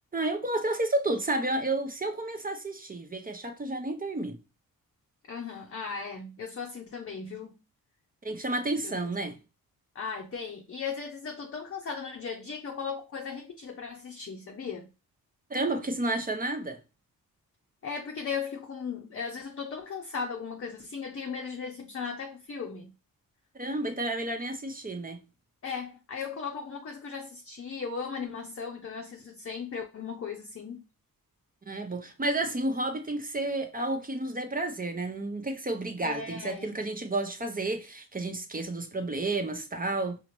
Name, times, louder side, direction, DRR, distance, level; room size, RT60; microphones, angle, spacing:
voice 1, 0.1-4.4 8.2-9.4 15.5-16.8 23.6-25.2 31.7-40.2, right 2 dB, 25° right, 0.7 m, -31 dB
voice 2, 5.3-7.6 8.8-8.9 9.9-14.9 17.8-22.9 25.6-30.8 36.0-36.8, left 5 dB, 35° left, 0.7 m, -37 dB
4.8 x 2.0 x 3.0 m
cardioid pair, 60°, 37 cm